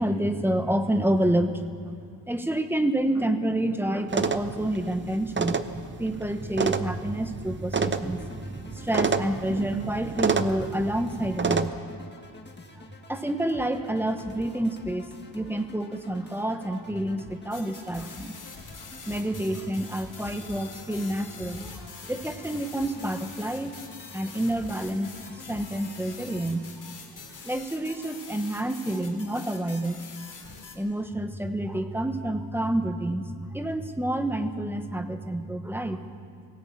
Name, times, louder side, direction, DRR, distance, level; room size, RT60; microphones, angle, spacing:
voice 1, 0.0-1.5 2.3-5.6 6.0-11.7 12.7-18.3 19.1-23.7 24.1-25.1 25.4-26.9 27.4-29.9 30.7-36.0, right 1 dB, 5° right, 7 dB, 0.9 m, -28 dB
sound 1, 4.1-11.7, right 5 dB, 25° right, 0.6 m, -29 dB
sound 2, 7.9-26.4, left 2 dB, 25° left, 1.7 m, -49 dB
sound 3, 17.5-30.8, left 5 dB, 45° left, 3.0 m, -45 dB
18.0 x 17.5 x 8.6 m, 2.3 s
wide cardioid pair, 170°, 43 cm